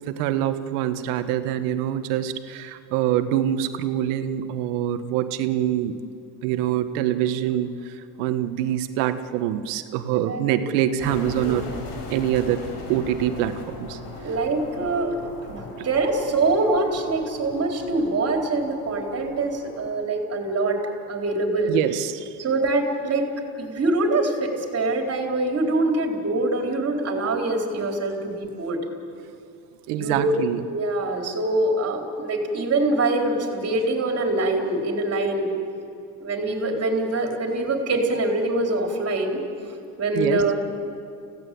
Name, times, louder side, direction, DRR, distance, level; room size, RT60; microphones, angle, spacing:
voice 1, 0.1-6.0 6.4-7.7 8.2-11.6 12.1-12.6 12.9-14.0 21.7-22.3 29.9-30.6 40.1-40.4, right 11 dB, 80° right, 9 dB, 1.6 m, -25 dB
voice 2, 10.1-10.7 11.4-11.5 14.2-15.2 15.5-20.8 21.1-21.8 22.4-23.3 23.6-28.8 29.9-30.4 30.7-35.5 36.2-39.4 40.0-40.5, right 2 dB, 35° right, 2 dB, 4.2 m, -24 dB
sound 1, 11.0-19.9, left 2 dB, 75° left, 5.3 m, -38 dB
28.5 x 17.0 x 8.6 m, 2.5 s
supercardioid pair, 110°, 45 cm